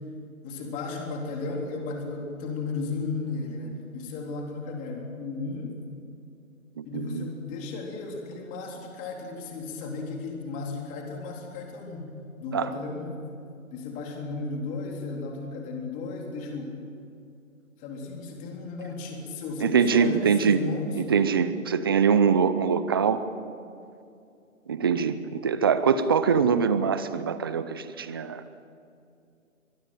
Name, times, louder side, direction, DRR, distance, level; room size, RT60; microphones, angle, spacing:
voice 1, 0.4-5.8 6.8-12.1 12.4-13.2 13.7-16.7 17.8-20.9 26.3-26.4, left 3 dB, 20° left, 1 dB, 3.7 m, -34 dB
voice 2, 6.8-7.3 12.5-12.7 19.6-20.6 20.9-23.3 24.7-28.4, right 6 dB, 15° right, 13 dB, 0.6 m, -23 dB
23.0 x 22.0 x 9.1 m, 2.5 s
figure-of-eight pair, 145°, 42 cm